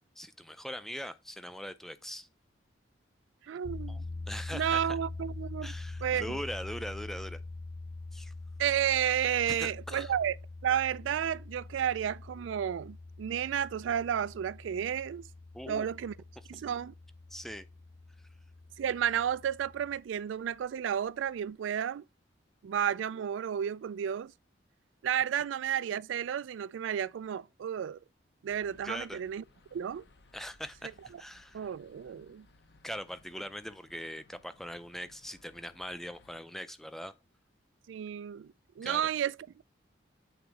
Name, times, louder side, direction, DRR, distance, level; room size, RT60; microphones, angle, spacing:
voice 1, 0.2-2.3 3.9-4.0 4.3-5.0 5.6-7.4 8.1-8.3 9.5-10.1 15.5-15.9 16.5-16.6 17.3-17.7 28.8-29.2 30.3-31.7 32.8-37.1 38.8-39.0, equal, ahead, 0.4 m, -41 dB
voice 2, 3.5-4.0 4.5-5.7 6.0-6.4 8.6-10.4 10.6-15.3 15.7-16.1 16.5-16.9 18.8-22.0 22.6-24.3 25.0-28.0 28.4-29.4 29.7-30.0 31.5-32.5 37.9-39.3, right 9 dB, 80° right, 0.3 m, -32 dB
sound 1, 3.6-20.0, left 2 dB, 45° left, 1.5 m, -44 dB
sound 2, 28.5-36.4, left 3 dB, 60° left, 0.8 m, -62 dB
8.0 x 3.9 x 4.6 m
head